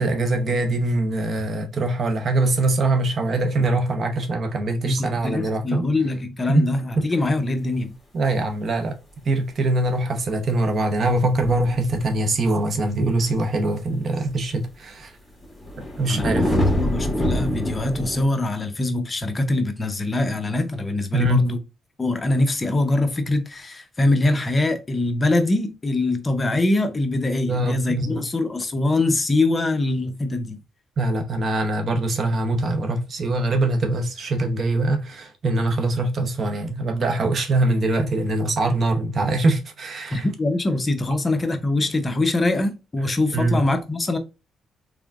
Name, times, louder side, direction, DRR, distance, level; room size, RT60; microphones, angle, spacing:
voice 1, 0.0-5.8 6.5-7.0 8.1-9.0 9.2-15.1 16.0-16.6 21.1-21.5 27.5-28.3 31.0-40.3 43.3-43.6, right 2 dB, 50° right, 0.8 m, -23 dB
voice 2, 4.8-7.9 16.1-16.4 16.8-21.6 22.0-30.6 40.1-44.2, left 2 dB, 25° left, 0.7 m, -23 dB
sound 1, 11.3-12.4 13.0-13.2 14.2-14.3 15.4-18.2, left 1 dB, 10° left, 1.9 m, -24 dB
3.6 x 3.3 x 2.4 m
cardioid pair, 90°, 0 cm